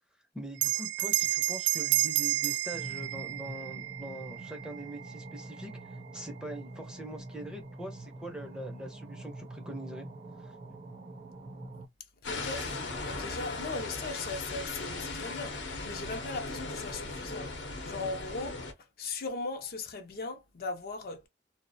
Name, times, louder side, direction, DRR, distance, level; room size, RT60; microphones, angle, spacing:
voice 1, 0.3-10.1 10.4-10.6, right 1 dB, 5° right, 0.5 m, -43 dB
Bell, 0.5-5.4, right 16 dB, 85° right, 0.3 m, -31 dB
sound 1, 2.7-11.9, right 2 dB, 45° right, 0.6 m, -45 dB
sound 2, 12.2-18.7, left 3 dB, 85° left, 0.8 m, -38 dB
voice 2, 12.2-17.5 17.8-21.3, left 3 dB, 55° left, 0.5 m, -39 dB
2.4 x 2.0 x 2.6 m
head